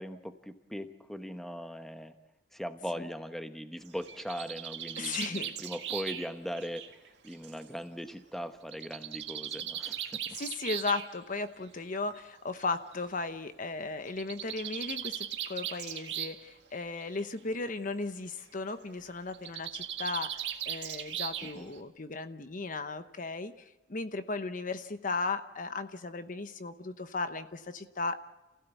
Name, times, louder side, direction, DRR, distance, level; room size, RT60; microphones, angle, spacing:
voice 1, 0.0-2.1 2.5-7.0 7.2-10.4 21.4-21.7, equal, ahead, 8 dB, 1.1 m, -40 dB
Bird, 3.9-7.6 8.7-11.1 12.2-12.3 12.6-12.7 12.9-13.0 14.1-16.5 16.8-17.2 19.3-21.8, right 10 dB, 75° right, 1.9 m, -38 dB
voice 2, 5.0-5.5 10.3-28.2, left 3 dB, 45° left, 10 dB, 0.9 m, -36 dB
28.0 x 16.0 x 8.3 m, 1.1 s
head